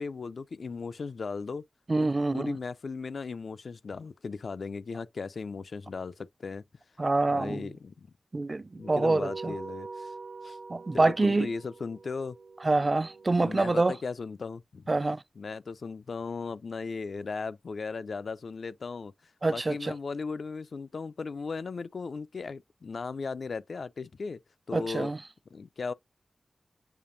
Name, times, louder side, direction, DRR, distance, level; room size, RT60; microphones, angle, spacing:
voice 1, 0.0-1.6 2.0-6.6 7.3-8.1 8.8-10.1 10.4-10.6 10.9-12.4 13.4-14.9 15.4-19.1 19.5-24.4 24.7-25.1 25.5-25.9, left 4 dB, 75° left, 0.3 m, -37 dB
voice 2, 1.9-2.6 7.0-7.7 8.3-9.5 10.7-11.5 12.6-13.9 14.9-15.2 19.4-19.9 24.7-25.2, right 2 dB, 35° right, 0.3 m, -26 dB
sound 1, 8.8-13.6, right 4 dB, 75° right, 0.9 m, -43 dB
6.8 x 2.7 x 2.6 m
wide cardioid pair, 90°, 0 cm